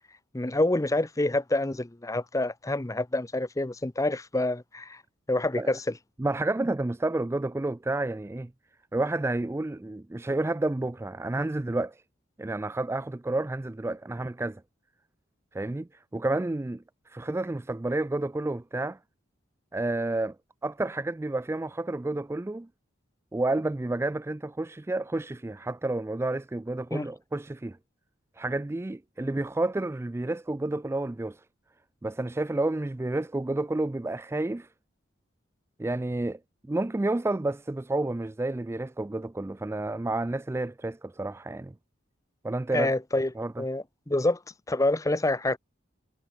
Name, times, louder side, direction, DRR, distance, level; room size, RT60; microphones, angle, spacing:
voice 1, 0.3-5.0 5.3-5.8 26.9-27.1 42.7-43.3 43.6-44.4 44.7-45.6, left 2 dB, 15° left, 0.7 m, -27 dB
voice 2, 6.2-8.5 8.9-12.0 12.4-14.6 15.5-19.0 19.7-20.4 20.6-22.7 23.3-27.8 28.4-31.4 32.0-34.7 35.8-36.4 36.7-41.7 42.4-42.9 43.4-43.6, right 2 dB, 15° right, 0.3 m, -30 dB
head